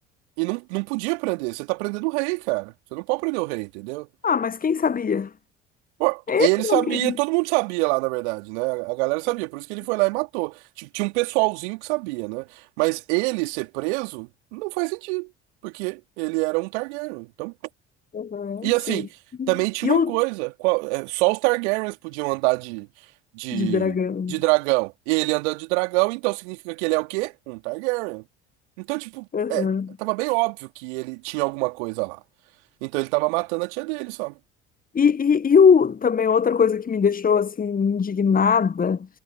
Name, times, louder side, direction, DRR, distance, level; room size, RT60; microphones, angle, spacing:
voice 1, 0.4-4.1 6.0-15.3 15.6-17.5 18.6-19.1 19.5-22.9 23.3-24.0 24.3-28.2 28.8-29.7 30.0-32.2 32.8-34.4, right 28 dB, 70° right, 3.2 m, -26 dB
voice 2, 4.2-5.3 6.3-7.2 18.1-19.0 19.4-19.5 19.8-20.1 23.5-24.4 29.3-29.9 34.9-39.1, left 6 dB, 25° left, 1.1 m, -21 dB
figure-of-eight pair, 60°, 36 cm